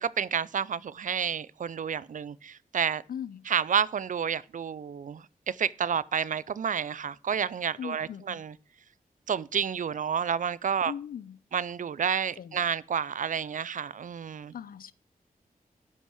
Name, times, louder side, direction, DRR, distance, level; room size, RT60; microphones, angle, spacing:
voice 1, 0.0-3.0 3.5-8.5 9.3-10.9 11.5-14.5, right 7 dB, 60° right, 0.4 m, -30 dB
voice 2, 3.1-3.5 7.8-8.4 10.8-11.4 12.4-12.7 14.5-14.9, left 8 dB, 75° left, 0.5 m, -39 dB
11.0 x 5.4 x 4.8 m
cardioid pair, 60°, 15 cm